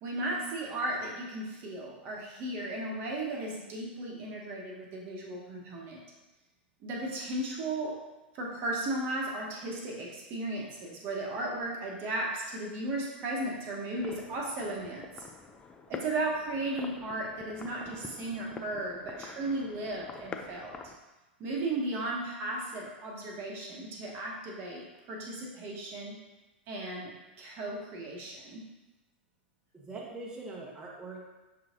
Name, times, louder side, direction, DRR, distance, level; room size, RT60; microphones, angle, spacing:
voice 1, 0.0-6.0 6.8-8.0 8.3-15.3 15.9-20.7 21.4-26.2 26.7-28.6, right 2 dB, 40° right, -2 dB, 1.0 m, -35 dB
sound 1, 14.0-21.0, left 5 dB, 15° left, 0.4 m, -46 dB
voice 2, 29.7-31.3, right 3 dB, 15° right, -4 dB, 0.8 m, -42 dB
6.6 x 3.2 x 2.5 m, 1.1 s
figure-of-eight pair, 95°, 6 cm